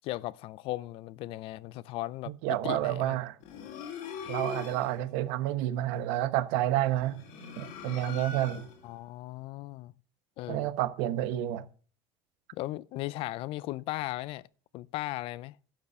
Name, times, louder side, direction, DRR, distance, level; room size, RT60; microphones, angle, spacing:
voice 1, 0.0-3.2 8.8-9.9 10.4-10.7 12.5-14.5 14.7-15.6, left 17 dB, 55° left, 0.4 m, -37 dB
voice 2, 2.4-3.4 4.2-7.2 7.6-8.7 10.5-11.7, right 13 dB, 70° right, 0.9 m, -29 dB
sound 1, 3.4-5.0 6.9-8.9, left 5 dB, 70° left, 2.6 m, -41 dB
11.5 x 5.6 x 6.7 m
cardioid pair, 140°, 11 cm